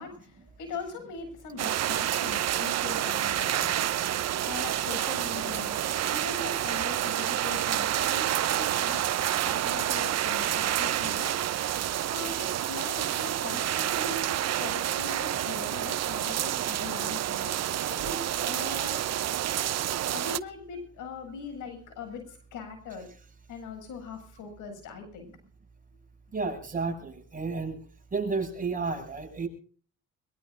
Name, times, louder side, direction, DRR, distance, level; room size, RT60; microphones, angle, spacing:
voice 1, 0.0-3.9 4.5-5.8 6.1-11.3 12.1-14.3 14.6-17.6 17.9-18.2 18.5-19.0 20.1-22.2 22.5-23.1 23.5-25.3, left 4 dB, 90° left, 7 dB, 7.7 m, -40 dB
sound 1, 1.6-20.4, right 12 dB, 60° right, 0.8 m, -29 dB
voice 2, 26.3-27.8 28.1-29.5, right 4 dB, 25° right, 4 dB, 7.0 m, -32 dB
22.0 x 22.0 x 2.6 m, 0.43 s
cardioid pair, 90°, 30 cm